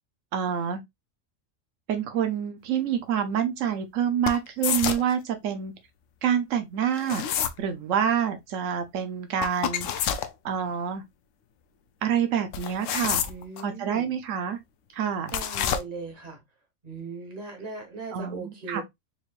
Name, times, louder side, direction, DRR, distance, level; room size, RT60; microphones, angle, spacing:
voice 1, 0.3-0.8 1.9-5.7 6.2-7.2 7.6-10.2 10.4-11.0 12.0-13.3 13.6-14.6 14.9-15.3 18.1-18.8, right 8 dB, 85° right, 1.0 m, -27 dB
sound 1, 4.3-5.1 7.0-7.6 9.4-10.3 12.5-13.6 15.3-15.8, left 9 dB, 80° left, 0.9 m, -28 dB
voice 2, 13.3-14.1 15.3-16.4 16.8-18.8, right 4 dB, 35° right, 1.3 m, -38 dB
4.3 x 3.1 x 2.3 m
omnidirectional pair, 1.3 m